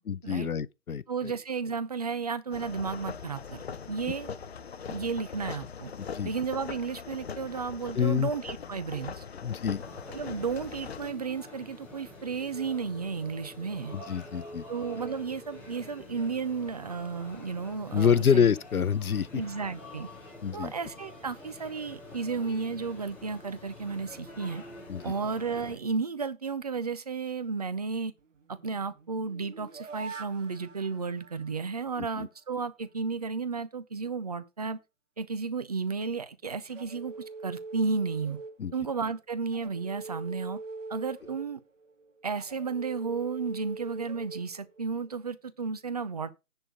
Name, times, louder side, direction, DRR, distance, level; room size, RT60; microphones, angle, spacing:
voice 1, 0.1-1.3 6.1-6.3 7.9-8.3 9.4-9.8 13.9-14.6 17.9-19.4 20.4-20.7 24.9-25.1 32.0-32.3 38.6-38.7, left 7 dB, 90° left, 0.7 m, -27 dB
voice 2, 1.1-3.6 3.9-4.3 4.9-5.9 6.2-9.2 10.1-13.9 14.7-18.5 19.3-20.1 20.5-24.6 25.0-28.1 28.5-34.8 35.2-37.1 37.4-38.4 38.7-40.6 40.9-41.6 42.2-46.3, right 5 dB, 30° right, 0.6 m, -33 dB
sound 1, 2.5-11.1, left 6 dB, 45° left, 0.9 m, -41 dB
sound 2, 9.8-25.8, left 1 dB, 5° left, 2.1 m, -47 dB
sound 3, 28.2-32.2 36.7-39.0 39.5-45.2, right 3 dB, 60° right, 1.7 m, -44 dB
10.5 x 4.3 x 6.4 m
figure-of-eight pair, 155°, 43 cm